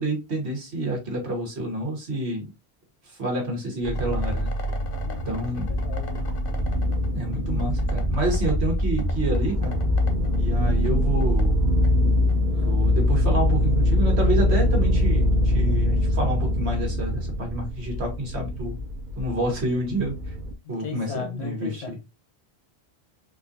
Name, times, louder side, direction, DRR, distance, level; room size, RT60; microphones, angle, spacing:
voice 1, 0.0-2.5 3.0-4.5 5.3-5.7 7.1-9.8 10.4-11.6 12.6-18.8 19.1-20.3 20.7-22.0, right 1 dB, 90° right, 1.6 m, -28 dB
sound 1, 3.8-12.5, right 1 dB, 60° left, 0.9 m, -30 dB
sound 2, 3.9-20.5, left 1 dB, 50° right, 0.8 m, -24 dB
voice 2, 5.0-5.4 5.7-6.2 12.5-12.8 20.8-22.0, left 5 dB, 80° left, 1.3 m, -37 dB
4.2 x 2.4 x 2.7 m
omnidirectional pair, 1.1 m